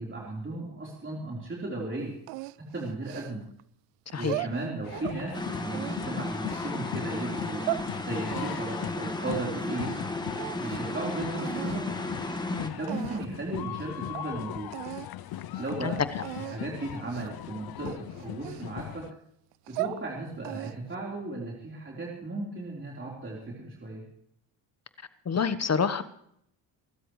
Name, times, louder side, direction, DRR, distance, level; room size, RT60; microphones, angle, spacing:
voice 1, 0.0-2.1 2.6-3.4 4.1-7.6 8.0-10.0 10.6-11.9 12.7-14.7 15.6-16.0 16.5-19.1 19.7-24.1, right 2 dB, 25° right, -3 dB, 4.2 m, -36 dB
sound 1, 2.3-3.6 4.1-5.2 5.7-6.8 7.3-7.9 8.3-10.1 10.3-11.0 11.4-11.8 12.5-12.6 12.9-13.4 13.8-13.9 14.1-14.3 14.7-15.1 15.4-15.7 16.2-16.6 17.1-17.4 17.9-19.0 19.5-20.0 20.4-21.0, right 22 dB, 80° right, 0.6 m, -37 dB
voice 2, 4.1-4.5 12.5-12.7 15.8-15.9 25.2-26.0, left 6 dB, 30° left, 14 dB, 1.2 m, -28 dB
sound 2, 4.8-19.1, left 13 dB, 50° left, 0.7 m, -39 dB
sound 3, 5.3-12.7, left 2 dB, 10° left, 1.8 m, -34 dB
25.5 x 13.0 x 3.3 m, 0.71 s
hypercardioid pair, 60°, 49 cm